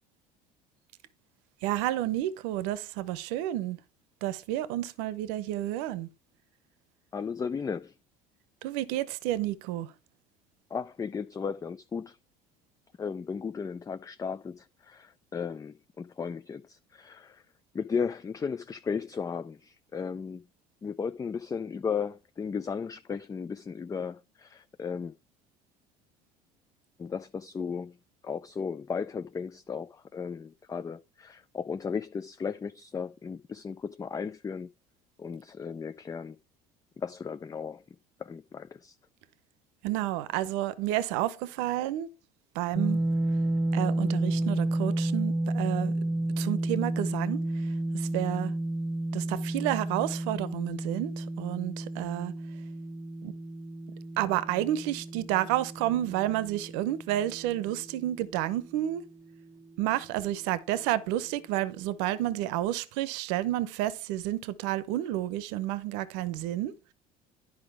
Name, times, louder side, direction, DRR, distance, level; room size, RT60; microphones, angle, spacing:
voice 1, 1.6-3.8 4.2-6.1 8.6-9.9 39.8-42.1 42.5-43.0 43.7-45.9 46.4-47.4 47.9-48.5 49.1-52.3 53.2-53.3 54.2-59.0 59.8-66.7, right 14 dB, 75° right, 0.8 m, -30 dB
voice 2, 7.1-7.9 10.7-12.2 13.0-17.4 17.7-20.4 20.8-25.1 27.0-28.0 28.2-34.7 35.2-36.4 37.0-37.8 38.2-38.9, left 6 dB, 20° left, 0.4 m, -35 dB
sound 1, 42.7-58.7, right 1 dB, 15° right, 0.9 m, -31 dB
10.5 x 5.0 x 4.8 m
supercardioid pair, 85°, 19 cm